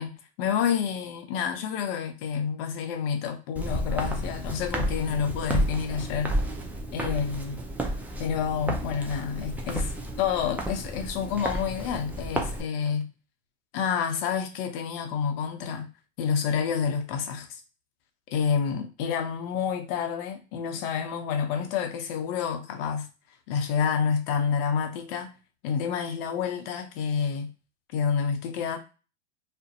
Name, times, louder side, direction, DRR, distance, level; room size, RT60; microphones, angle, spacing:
voice 1, 0.0-6.3 6.9-7.6 8.2-9.9 10.2-13.1 13.7-15.9 16.2-17.5 18.3-23.1 23.5-25.3 25.6-27.5 27.9-28.8, left 7 dB, 55° left, 0.7 m, -28 dB
Walk footsteps, 3.6-12.6, right 1 dB, 5° right, 0.3 m, -31 dB
2.5 x 2.1 x 2.6 m
hypercardioid pair, 100°, 34 cm